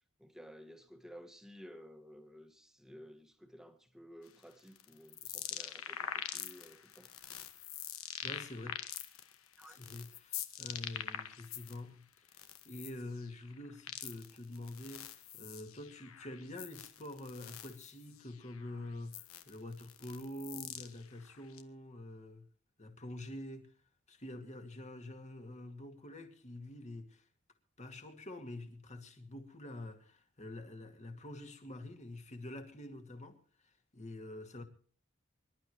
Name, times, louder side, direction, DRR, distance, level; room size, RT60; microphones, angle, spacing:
voice 1, 0.2-7.1 9.6-9.8, equal, ahead, 1.7 m, -54 dB
sound 1, 4.3-11.8 12.2-21.6, left 10 dB, 80° left, 1.4 m, -45 dB
voice 2, 8.2-8.8 9.6-22.5 22.8-23.7 24.1-27.2 27.8-33.4 33.9-34.6, left 1 dB, 35° left, 2.3 m, -46 dB
25.5 x 12.0 x 3.1 m
head